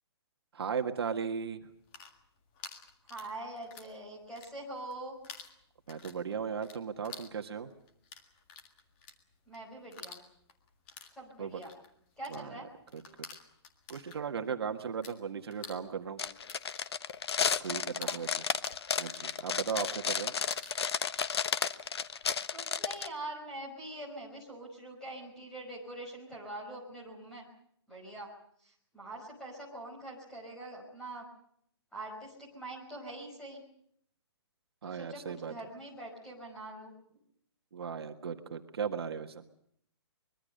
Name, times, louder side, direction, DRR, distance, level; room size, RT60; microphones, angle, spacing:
voice 1, 0.5-1.6 5.9-7.7 11.4-11.6 12.3-12.6 12.9-13.0 13.9-16.2 17.6-18.4 19.0-20.3 34.8-35.5 37.7-39.4, right 6 dB, 60° right, 5 dB, 1.7 m, -36 dB
sound 1, 1.7-4.0 4.2-5.0 5.2-15.2 15.4-20.8, left 5 dB, 20° left, 1.8 m, -50 dB
voice 2, 3.1-5.2 9.5-10.2 11.1-11.7 12.2-12.7 17.7-18.2 22.5-27.5 27.9-28.3 28.6-31.3 31.9-33.6 34.8-36.9, right 1 dB, 5° left, -2 dB, 5.2 m, -44 dB
sound 2, 16.2-23.1, left 7 dB, 65° left, 1.1 m, -32 dB
24.5 x 22.5 x 6.6 m, 0.68 s
hypercardioid pair, 175°, 15 cm